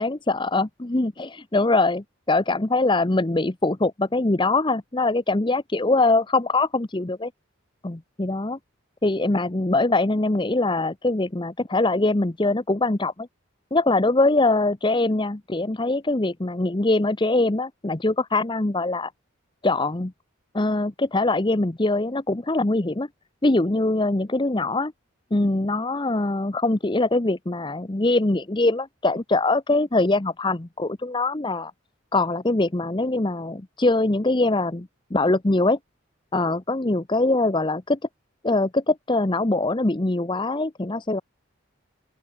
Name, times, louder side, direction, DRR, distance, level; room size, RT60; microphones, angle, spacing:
voice 1, 0.0-7.3 7.8-8.6 9.0-13.3 13.7-19.1 19.6-20.1 20.5-23.1 23.4-24.9 25.3-31.7 32.1-35.8 36.3-38.0 38.4-41.2, left 2 dB, 25° left, 0.8 m, -23 dB
open air
head